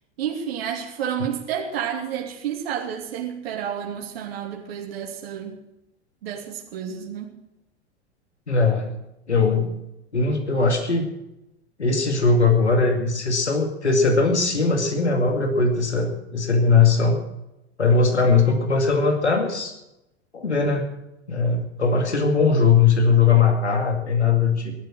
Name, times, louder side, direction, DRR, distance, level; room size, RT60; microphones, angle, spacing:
voice 1, 0.2-5.6 6.2-7.4, right 8 dB, 60° right, 0 dB, 2.7 m, -30 dB
voice 2, 8.5-8.9 9.3-9.8 10.1-11.1 11.8-17.2 17.8-19.7 20.3-20.9 21.3-24.8, left 4 dB, 85° left, 4 dB, 2.4 m, -20 dB
18.0 x 12.0 x 6.2 m, 0.89 s
figure-of-eight pair, 85°, 33 cm